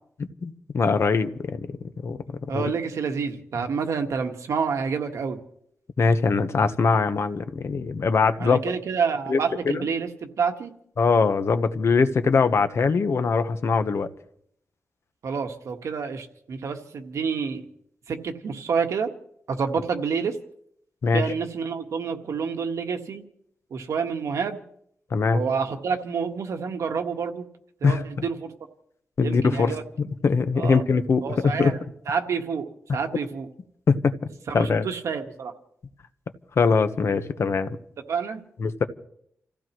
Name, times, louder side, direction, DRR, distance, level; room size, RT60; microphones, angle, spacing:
voice 1, 0.4-1.8 2.0-2.2 2.5-2.6 6.0-8.6 9.3-9.4 9.6-9.8 11.0-14.1 21.0-21.2 25.1-25.4 27.8-28.0 29.2-31.8 33.9-34.1 34.5-34.9 36.6-37.8 38.6-38.8, left 4 dB, 60° left, 1.0 m, -22 dB
voice 2, 2.5-5.4 8.4-10.7 15.2-17.7 18.1-19.1 19.5-20.4 21.1-23.2 23.7-24.6 25.3-27.4 27.8-28.5 29.2-29.8 30.6-30.8 31.2-31.8 32.1-33.5 34.5-35.5 38.1-38.4, right 6 dB, 85° right, 1.5 m, -28 dB
30.0 x 15.5 x 3.1 m
wide cardioid pair, 110°, 5 cm